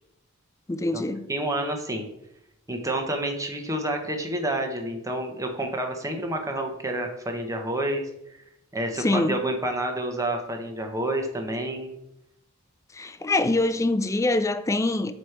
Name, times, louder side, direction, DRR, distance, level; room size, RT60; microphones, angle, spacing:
voice 1, 0.7-1.3 9.0-9.4 12.9-15.1, left 2 dB, 15° left, 0.4 m, -24 dB
voice 2, 1.3-2.1 2.7-8.0 8.7-11.9, right 1 dB, 15° right, 1.1 m, -29 dB
7.9 x 3.2 x 5.7 m
head